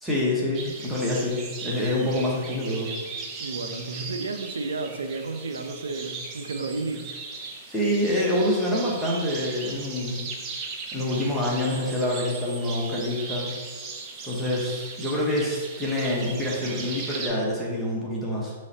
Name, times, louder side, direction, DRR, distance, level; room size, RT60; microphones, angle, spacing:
voice 1, 0.0-2.9 7.7-10.2 10.9-13.5 14.2-18.5, left 1 dB, ahead, -6 dB, 1.0 m, -26 dB
sound 1, 0.5-17.3, right 4 dB, 30° right, 0.7 m, -38 dB
voice 2, 3.4-7.0, right 3 dB, 85° right, 6 dB, 0.5 m, -32 dB
5.6 x 3.1 x 2.8 m, 1.4 s
hypercardioid pair, 130°, 0 cm